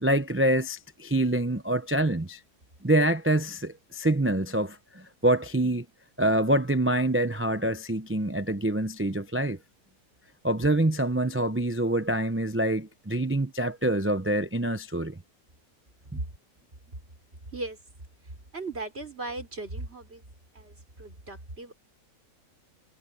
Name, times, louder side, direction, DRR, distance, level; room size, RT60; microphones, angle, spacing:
voice 1, 0.0-2.4 2.8-5.9 6.2-9.6 10.4-15.1 16.1-16.2, right 1 dB, 20° right, 0.3 m, -26 dB
voice 2, 18.5-20.2 20.5-21.7, right 2 dB, 40° right, 4.4 m, -37 dB
omnidirectional pair, 1.7 m